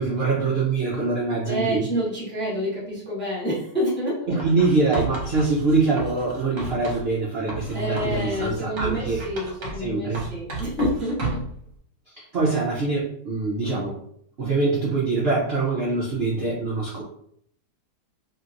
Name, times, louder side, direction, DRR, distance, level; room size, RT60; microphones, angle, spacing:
voice 1, 0.0-1.9 4.3-9.2 9.8-10.2 12.2-14.0 14.4-17.0, right 3 dB, 75° right, -5 dB, 0.5 m, -24 dB
voice 2, 1.4-4.4 7.7-11.4 13.7-13.9, equal, 10° left, -6 dB, 0.5 m, -28 dB
Writing, 4.4-7.1 7.5-9.9 10.2-11.6, right 3 dB, 55° right, 1.0 m, -33 dB
2.8 x 2.8 x 2.5 m, 0.67 s
omnidirectional pair, 1.9 m